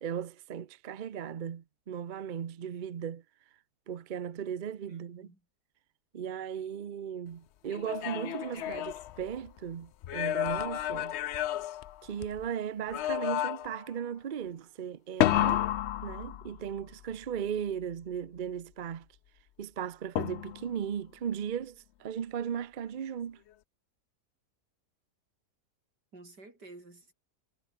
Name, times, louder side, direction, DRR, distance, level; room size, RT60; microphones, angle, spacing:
voice 1, 0.0-3.2 3.9-5.3 6.1-11.2 12.0-15.7 16.0-19.1 19.6-23.4, right 8 dB, 45° right, 0.6 m, -37 dB
voice 2, 4.9-5.4 26.1-27.1, right 2 dB, 85° right, 6.5 m, -52 dB
sound 1, 7.7-9.6 10.0-12.5 12.9-13.9 15.2-16.8 20.2-20.8, left 12 dB, 70° left, 0.6 m, -31 dB
omnidirectional pair, 1.7 m